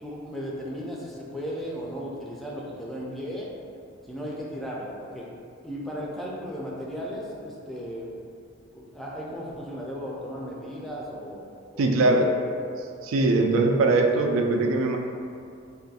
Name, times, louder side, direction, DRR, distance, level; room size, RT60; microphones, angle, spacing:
voice 1, 0.0-3.5 4.0-5.3 5.6-8.2 8.7-11.5 11.7-12.2, equal, ahead, -5 dB, 0.4 m, -35 dB
voice 2, 11.8-12.3 13.0-15.0, right 2 dB, 75° right, 3 dB, 0.3 m, -21 dB
2.6 x 2.4 x 4.0 m, 2.4 s
head